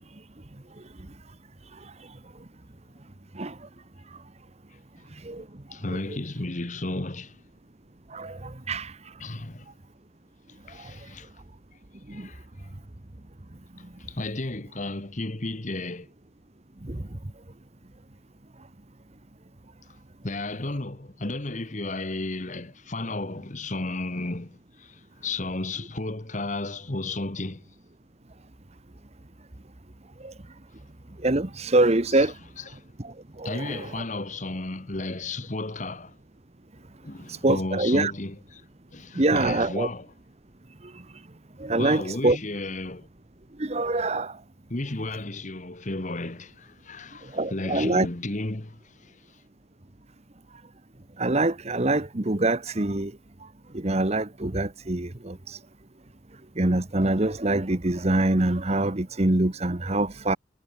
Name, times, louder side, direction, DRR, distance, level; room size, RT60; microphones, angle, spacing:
voice 1, 5.7-7.4 9.2-9.7 10.7-11.3 12.1-12.7 13.8-16.1 20.2-27.6 32.1-32.3 32.6-32.8 33.4-36.2 37.0-38.6 38.9-40.1 41.7-43.1 44.7-49.4, left 2 dB, 40° left, 1.4 m, -33 dB
voice 2, 8.1-8.9 12.1-12.3 16.8-17.0 30.2-30.3 31.2-32.3 33.0-34.0 37.4-38.1 39.1-39.9 41.6-42.4 43.6-44.3 47.3-48.1 51.2-53.1 53.7-55.4 56.6-60.4, right 2 dB, 35° right, 1.2 m, -24 dB
head